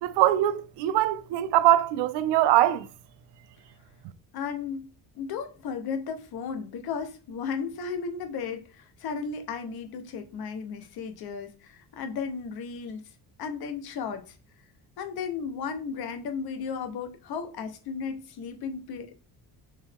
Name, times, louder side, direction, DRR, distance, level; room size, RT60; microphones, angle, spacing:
voice 1, 0.0-2.9, right 13 dB, 85° right, 0.5 m, -22 dB
voice 2, 4.3-4.9 5.2-13.0 13.4-14.3 15.0-19.1, left 6 dB, 65° left, 1.0 m, -34 dB
4.5 x 3.1 x 3.5 m
cardioid pair, 165°, 41 cm